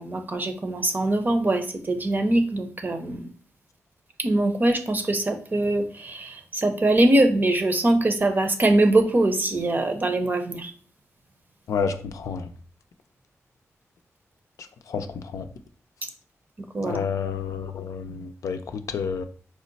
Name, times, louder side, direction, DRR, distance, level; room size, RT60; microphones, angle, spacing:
voice 1, 0.0-3.3 4.2-10.7 16.7-17.0, right 2 dB, 35° right, 6 dB, 0.6 m, -22 dB
voice 2, 11.7-12.5 14.9-15.1 15.3-15.5 16.9-19.2, left 6 dB, 85° left, 7 dB, 0.4 m, -29 dB
4.8 x 2.1 x 3.9 m, 0.42 s
wide cardioid pair, 90°, 5 cm